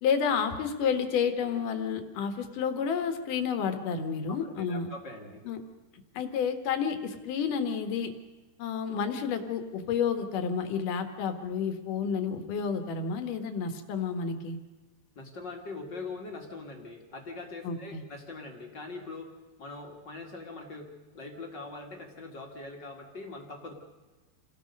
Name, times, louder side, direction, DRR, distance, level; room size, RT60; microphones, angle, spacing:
voice 1, 0.0-4.9 5.5-5.6 6.1-8.1 8.6-14.6 17.6-18.0, left 6 dB, 60° left, 7 dB, 2.6 m, -30 dB
voice 2, 4.3-5.4 15.2-19.3 19.6-23.7, left 3 dB, 40° left, 2 dB, 1.8 m, -42 dB
28.5 x 19.5 x 5.3 m, 1.2 s
omnidirectional pair, 5.1 m